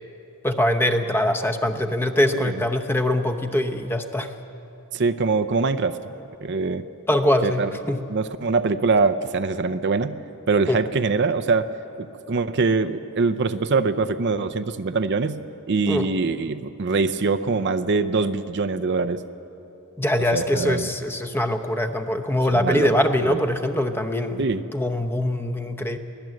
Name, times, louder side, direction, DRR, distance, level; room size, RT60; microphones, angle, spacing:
voice 1, 0.4-4.3 7.1-8.0 10.7-10.8 15.9-16.1 20.0-24.4 24.7-26.0, left 1 dB, 10° left, 7 dB, 0.8 m, -23 dB
voice 2, 4.9-6.0 6.4-6.8 7.4-7.7 8.1-10.2 10.5-11.7 12.0-15.4 15.7-19.2 20.3-20.9 22.5-23.0 23.3-23.4 24.4-24.6, right 4 dB, 50° right, 11 dB, 0.6 m, -23 dB
23.0 x 16.5 x 7.7 m, 2.9 s
head